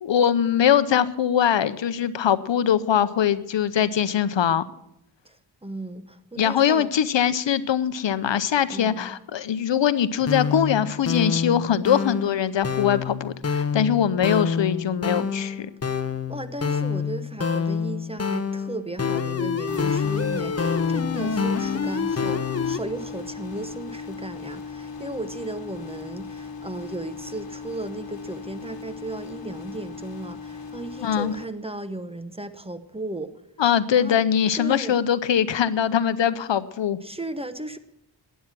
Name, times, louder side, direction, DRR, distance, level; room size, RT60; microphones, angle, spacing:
voice 1, 0.0-4.6 6.4-15.7 31.0-31.3 33.6-37.0, left 9 dB, 75° left, 14 dB, 0.7 m, -22 dB
voice 2, 5.6-6.9 8.7-9.2 16.3-33.3 34.0-34.2 34.5-35.0 37.0-37.8, right 2 dB, 15° right, 11 dB, 0.9 m, -35 dB
sound 1, 10.2-22.8, left 6 dB, 35° left, 0.8 m, -27 dB
sound 2, 19.7-31.4, left 5 dB, 55° left, 1.5 m, -37 dB
12.0 x 9.3 x 7.3 m, 0.82 s
wide cardioid pair, 65°, 45 cm